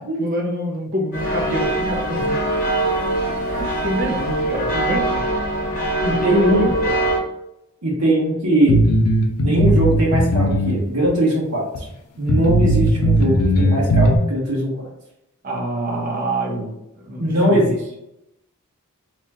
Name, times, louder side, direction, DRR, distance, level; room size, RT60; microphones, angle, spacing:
voice 1, 0.2-2.4 3.8-5.3 6.0-7.0 15.4-16.8 17.0-17.6, equal, 40° right, -1 dB, 0.7 m, -26 dB
sound 1, 1.1-7.2, right 1 dB, 40° left, 0.9 m, -22 dB
voice 2, 6.0-6.7 7.8-8.8 9.4-11.7 12.2-14.9 17.2-17.8, right 1 dB, 80° right, -4 dB, 1.3 m, -20 dB
sound 2, 8.7-10.8 11.0-11.1 11.7-11.8 12.3-14.2, equal, 85° left, 0.6 m, -17 dB
3.0 x 2.4 x 4.2 m, 0.83 s
head